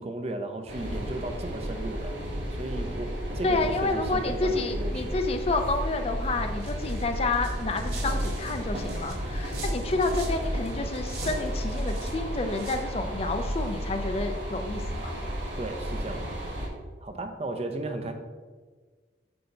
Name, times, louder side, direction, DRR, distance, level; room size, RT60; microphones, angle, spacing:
voice 1, 0.0-2.1 2.5-5.1 15.6-16.4 17.0-18.1, right 2 dB, 35° right, 6 dB, 0.5 m, -35 dB
sound 1, 0.7-16.7, equal, 90° right, 1.5 m, -32 dB
voice 2, 3.4-15.1, left 3 dB, 30° left, 6 dB, 0.4 m, -29 dB
sound 2, 6.6-10.4 10.7-12.2 12.5-12.8, right 4 dB, 60° right, 1.6 m, -44 dB
7.7 x 2.8 x 5.3 m, 1.4 s
head